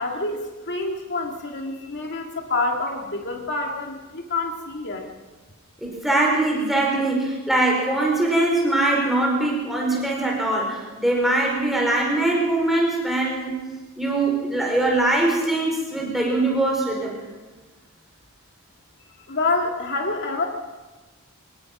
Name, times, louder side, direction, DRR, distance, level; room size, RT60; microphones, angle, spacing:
voice 1, 0.0-5.1 19.3-20.4, left 3 dB, 55° left, 2 dB, 2.1 m, -27 dB
voice 2, 5.8-13.6 14.0-17.2, right 2 dB, ahead, -2 dB, 4.6 m, -22 dB
24.0 x 19.5 x 6.0 m, 1.2 s
head